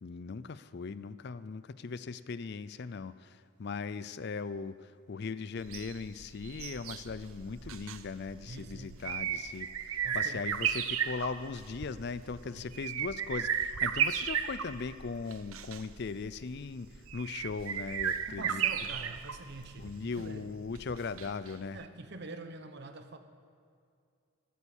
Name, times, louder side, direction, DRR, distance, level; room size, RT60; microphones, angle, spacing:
voice 1, 0.0-18.6 19.8-21.8, left 4 dB, 50° left, 15 dB, 0.4 m, -39 dB
sound 1, 5.6-21.5 21.8-21.9, right 8 dB, 75° right, 0.7 m, -35 dB
voice 2, 8.5-9.0 10.0-10.5 12.5-12.8 18.3-20.5 21.7-23.2, right 2 dB, 50° right, 8 dB, 1.0 m, -45 dB
13.0 x 12.5 x 7.2 m, 2.3 s
head